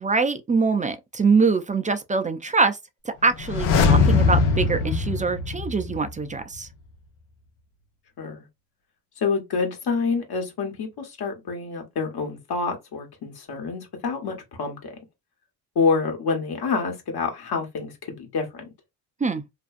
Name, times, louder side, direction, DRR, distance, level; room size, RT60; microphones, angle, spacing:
voice 1, 0.0-2.8 3.0-6.7 19.2-19.4, right 4 dB, 20° right, 0.4 m, -23 dB
sound 1, 3.3-6.3 6.5-6.6, left 4 dB, 80° left, 0.8 m, -21 dB
voice 2, 9.2-14.9 15.7-18.7, left 4 dB, 55° left, 1.2 m, -27 dB
2.6 x 2.2 x 2.5 m
supercardioid pair, 60°, 45 cm